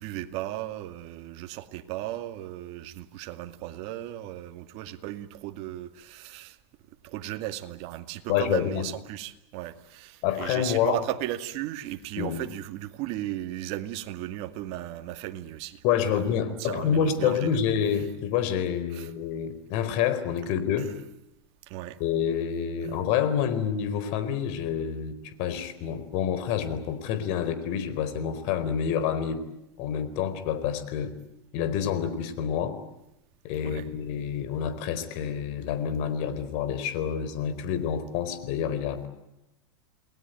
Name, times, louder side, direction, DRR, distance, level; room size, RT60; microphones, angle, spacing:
voice 1, 0.0-6.6 7.0-17.6 18.9-19.1 20.8-20.9 21.7-22.0 33.6-33.9, right 14 dB, 50° right, 2.4 m, -36 dB
voice 2, 8.3-8.9 10.2-11.0 12.2-12.4 15.8-20.9 22.0-29.4 29.8-31.1 31.5-32.8 33.4-39.1, left 8 dB, 50° left, 4.3 m, -28 dB
29.0 x 20.0 x 9.3 m
supercardioid pair, 135°, 14 cm